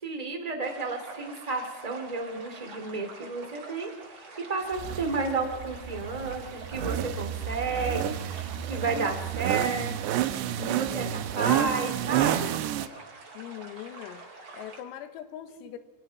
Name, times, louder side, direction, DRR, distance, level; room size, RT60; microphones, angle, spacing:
voice 1, 0.0-10.2 10.7-12.6 15.6-15.7, right 3 dB, 10° right, 4 dB, 1.8 m, -32 dB
sound 1, 0.6-14.8, right 3 dB, 35° right, 4.8 m, -46 dB
sound 2, 4.7-12.9, right 11 dB, 75° right, 2.6 m, -30 dB
voice 2, 10.6-11.5 13.4-14.2 14.5-15.8, left 11 dB, 85° left, 10 dB, 4.3 m, -42 dB
29.0 x 24.0 x 6.0 m, 1.2 s
omnidirectional pair, 5.9 m